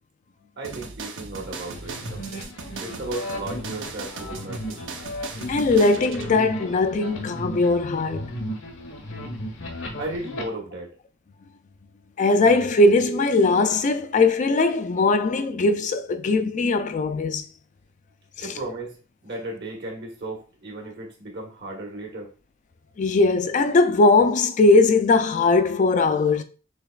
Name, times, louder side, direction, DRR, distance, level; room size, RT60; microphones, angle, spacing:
voice 1, 0.6-2.5 2.8-4.8 10.0-10.9 18.4-19.0 19.2-22.3, right 2 dB, 60° right, 1.3 m, -35 dB
sound 1, 0.6-6.3, right 4 dB, 75° right, 0.7 m, -38 dB
sound 2, 1.4-10.4, equal, 75° left, 1.1 m, -35 dB
voice 2, 5.5-8.3 12.2-17.4 18.4-18.5 23.0-26.4, left 3 dB, 40° left, 0.4 m, -20 dB
6.6 x 3.0 x 2.4 m
head